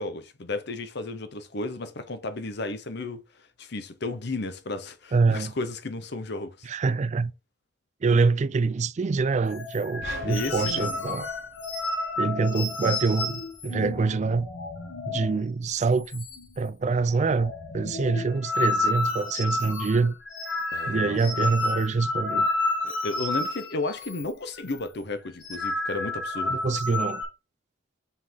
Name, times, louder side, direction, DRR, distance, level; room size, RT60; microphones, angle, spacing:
voice 1, 0.0-3.2 3.6-6.7 10.2-11.0 20.7-21.2 22.8-26.6, left 2 dB, 60° left, 0.9 m, -33 dB
voice 2, 5.1-5.5 6.6-7.3 8.0-11.3 12.2-14.5 15.1-16.3 16.6-20.2 20.9-22.5 26.5-27.2, right 4 dB, 40° right, 0.4 m, -25 dB
sound 1, 9.4-15.4 15.7-15.8 16.1-16.7 17.0-24.3 24.6-24.8 25.2-27.2, left 2 dB, 90° left, 1.9 m, -30 dB
sound 2, 10.0-12.4, right 1 dB, 55° right, 1.3 m, -43 dB
5.7 x 3.8 x 4.7 m
head